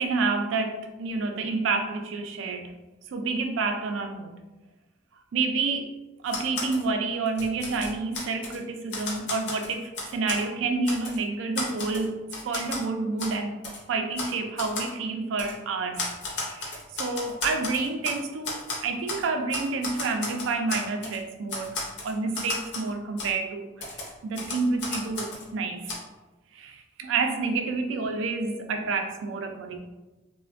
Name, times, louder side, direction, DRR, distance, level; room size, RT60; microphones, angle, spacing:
voice 1, 0.0-2.8 3.1-4.3 5.3-5.9 6.2-13.6 13.9-21.8 22.0-26.0 26.5-29.8, right 4 dB, 80° right, 5 dB, 0.3 m, -29 dB
Typewriter, 6.3-6.8 7.3-8.6 8.9-10.4 10.8-11.2 11.5-12.8 13.2-13.3 13.6-13.8 14.1-14.3 14.6-14.9 15.4-15.5 16.0-18.2 18.4-19.2 19.5-21.2 21.5-22.9 23.2-23.3 23.8-25.5 25.9-26.0, left 3 dB, 65° left, 0.7 m, -34 dB
3.2 x 2.1 x 2.4 m, 1.1 s
head